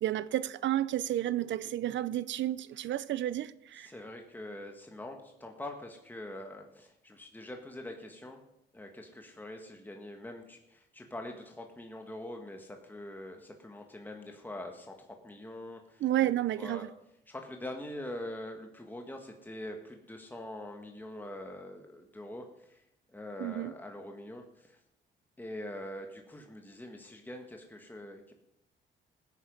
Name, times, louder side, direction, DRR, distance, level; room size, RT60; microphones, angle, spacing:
voice 1, 0.0-3.9 16.0-16.9 23.4-23.7, right 13 dB, 70° right, 0.6 m, -31 dB
voice 2, 3.8-8.4 8.7-16.3 16.6-16.9 17.3-22.8 23.1-24.8 25.4-28.3, left 1 dB, 10° left, 1.8 m, -44 dB
16.0 x 9.3 x 5.4 m
cardioid pair, 90°, 20 cm